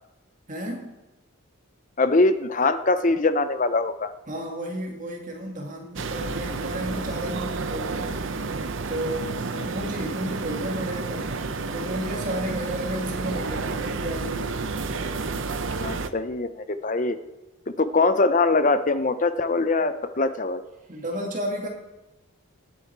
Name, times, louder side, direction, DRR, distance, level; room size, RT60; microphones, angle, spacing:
voice 1, 0.5-1.0 4.3-8.3 8.9-9.4 9.6-11.3 11.7-14.6 20.9-21.7, equal, 35° right, 1 dB, 2.1 m, -32 dB
voice 2, 2.0-4.1 9.5-9.7 15.8-17.2 17.8-20.6, left 3 dB, 35° left, 11 dB, 0.6 m, -22 dB
sound 1, 6.0-16.1, right 3 dB, 60° right, 0.7 m, -30 dB
18.5 x 8.4 x 4.6 m, 1.0 s
head